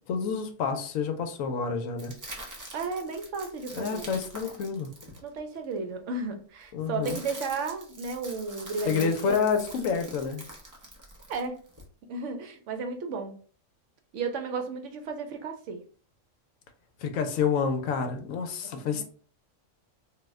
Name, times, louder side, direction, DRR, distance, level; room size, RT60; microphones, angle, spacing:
voice 1, 0.1-2.1 3.7-4.9 6.7-7.2 8.8-10.4 17.0-19.0, left 6 dB, 90° left, 1.0 m, -28 dB
sound 1, 2.0-5.7 6.6-11.9, right 1 dB, 30° right, 0.4 m, -45 dB
voice 2, 2.7-4.1 5.2-9.3 11.3-11.6 12.1-13.3 14.1-15.8 18.9-19.0, right 4 dB, 70° right, 0.8 m, -33 dB
2.5 x 2.1 x 3.4 m
omnidirectional pair, 1.3 m